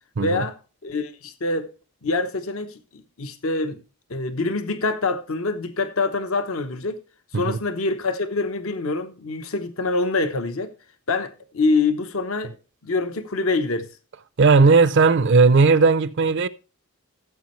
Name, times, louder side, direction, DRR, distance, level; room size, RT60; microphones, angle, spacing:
voice 1, 0.2-0.6 0.8-1.7 2.0-3.8 4.1-7.0 7.3-10.7 11.1-12.5 12.8-13.9, left 3 dB, 70° left, 0.9 m, -25 dB
voice 2, 14.4-16.5, right 4 dB, 55° right, 0.5 m, -16 dB
14.0 x 7.6 x 3.1 m
head